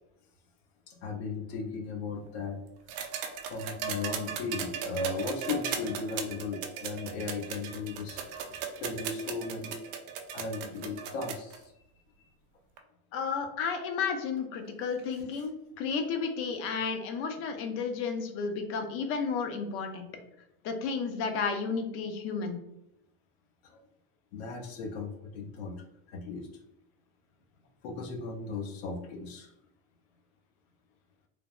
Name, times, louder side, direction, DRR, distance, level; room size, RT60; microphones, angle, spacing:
voice 1, 0.9-2.6 3.4-8.2 8.5-9.8 10.3-11.7 23.6-23.8 24.3-25.8 26.1-26.5 27.8-29.5, left 4 dB, 80° left, 2 dB, 0.7 m, -36 dB
sound 1, 2.9-11.6 12.8-12.9, right 7 dB, 60° right, 0.5 m, -37 dB
voice 2, 13.1-20.1 20.6-22.6, left 5 dB, 45° left, 5 dB, 0.5 m, -32 dB
3.2 x 2.0 x 2.3 m, 0.83 s
supercardioid pair, 140°, 31 cm